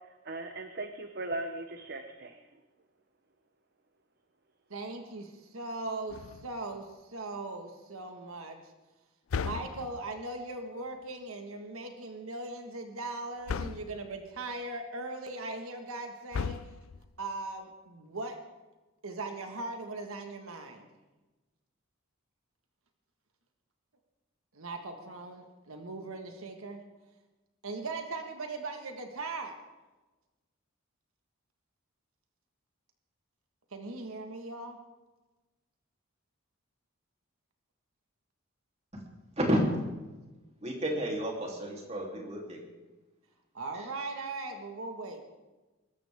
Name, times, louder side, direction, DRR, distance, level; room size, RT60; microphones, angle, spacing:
voice 1, 0.3-2.4, right 2 dB, 50° right, 6 dB, 0.9 m, -38 dB
voice 2, 4.7-8.6 9.3-16.6 17.2-18.4 19.0-20.9 24.5-26.8 27.6-29.6 33.7-34.8 43.5-45.2, right 2 dB, 80° right, 5 dB, 1.6 m, -39 dB
sound 1, 6.1-6.8 9.3-10.2 13.5-14.1 16.3-17.1, left 5 dB, 75° left, 0.5 m, -36 dB
voice 3, 40.6-42.6, equal, 30° right, -1 dB, 3.2 m, -31 dB
24.0 x 13.5 x 3.6 m, 1.2 s
head